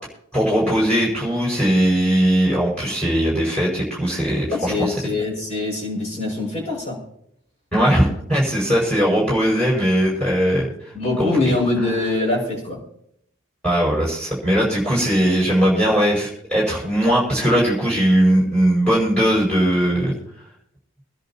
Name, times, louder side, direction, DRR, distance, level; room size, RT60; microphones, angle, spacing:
voice 1, 0.3-4.9 7.7-10.7 11.2-11.3 13.6-20.2, equal, 5° left, -5 dB, 5.7 m, -19 dB
voice 2, 4.5-7.0 10.9-12.8, left 2 dB, 30° left, -1 dB, 6.2 m, -23 dB
25.0 x 10.5 x 2.9 m, 0.71 s
head